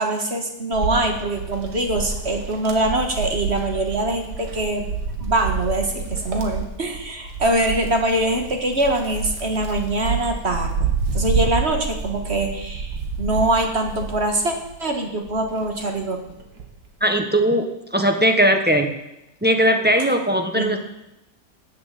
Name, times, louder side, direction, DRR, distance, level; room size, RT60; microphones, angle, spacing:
voice 1, 0.0-4.9 5.2-14.5 14.8-16.2 20.5-20.8, right 1 dB, 40° right, 4 dB, 1.9 m, -23 dB
Wind, 0.7-14.8 15.3-16.8, right 5 dB, 70° right, 2.4 m, -28 dB
voice 2, 17.0-17.7 17.9-18.9 19.4-20.8, equal, 5° right, 5 dB, 1.2 m, -18 dB
13.5 x 8.0 x 8.4 m, 0.89 s
omnidirectional pair, 1.8 m